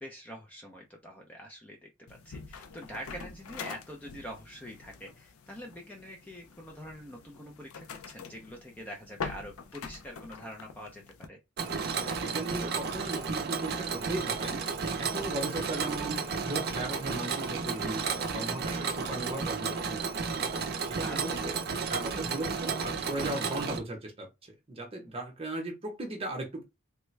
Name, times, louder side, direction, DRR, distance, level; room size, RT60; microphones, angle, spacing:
voice 1, 0.0-11.4 21.0-21.5, equal, 5° left, 0.4 m, -45 dB
sound 1, 2.1-11.3, left 5 dB, 85° left, 0.5 m, -45 dB
Mechanisms, 11.6-23.8, right 5 dB, 45° right, 0.5 m, -33 dB
voice 2, 12.0-14.6 15.0-20.4 20.9-21.6 21.8-26.6, right 2 dB, 25° right, 0.8 m, -37 dB
3.4 x 2.1 x 3.1 m
head